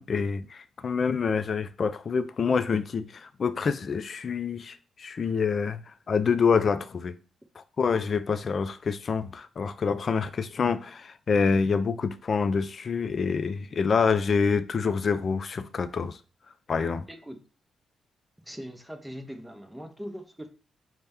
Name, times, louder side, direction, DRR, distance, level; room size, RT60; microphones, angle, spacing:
voice 1, 0.0-7.1 7.6-16.2 16.7-17.1, left 5 dB, 50° left, 0.3 m, -27 dB
voice 2, 17.1-17.4 18.4-20.5, equal, 5° right, 0.7 m, -41 dB
4.2 x 2.1 x 3.4 m
cardioid pair, 85°, 0 cm